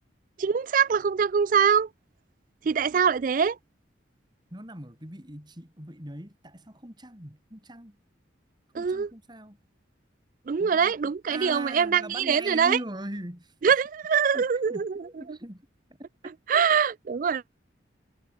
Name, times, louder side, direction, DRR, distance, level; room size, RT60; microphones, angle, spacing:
voice 1, 0.4-1.9 2.6-3.6 8.7-9.1 10.5-12.8 13.6-15.1 16.5-17.4, right 7 dB, 45° right, 0.3 m, -23 dB
voice 2, 4.5-8.0 8.7-9.6 10.6-13.8 14.3-15.7, right 1 dB, 20° right, 3.9 m, -40 dB
head